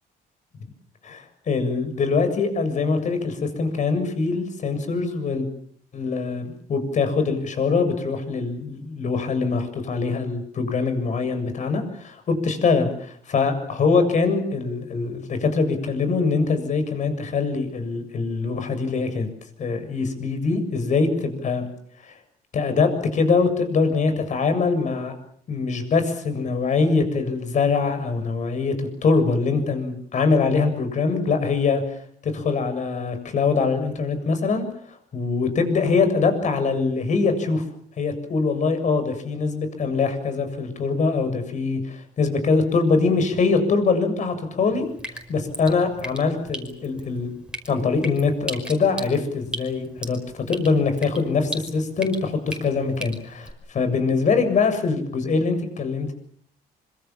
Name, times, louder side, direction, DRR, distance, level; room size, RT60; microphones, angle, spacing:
voice 1, 1.0-5.5 5.9-6.4 6.7-19.3 19.6-21.6 22.0-22.2 22.5-25.1 25.5-32.0 32.2-37.6 38.0-47.3 47.7-56.1, left 4 dB, 45° left, 8 dB, 7.3 m, -23 dB
Drip, 44.7-53.5, right 1 dB, 5° right, 5.3 m, -38 dB
25.5 x 25.0 x 7.4 m, 0.63 s
cardioid pair, 110°, 17 cm